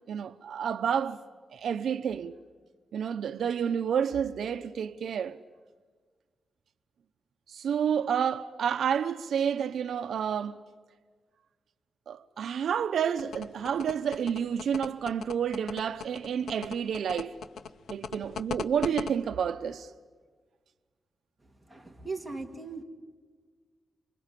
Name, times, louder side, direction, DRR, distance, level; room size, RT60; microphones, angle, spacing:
voice 1, 0.1-1.2 1.5-2.3 2.9-5.4 7.5-10.6 12.1-17.4 17.9-19.9, right 8 dB, 80° right, 0.8 m, -30 dB
sound 1, 13.2-19.1, left 6 dB, 90° left, 0.8 m, -37 dB
voice 2, 21.7-22.8, right 3 dB, 5° right, 2.2 m, -38 dB
27.0 x 25.0 x 8.3 m
wide cardioid pair, 170°, 0 cm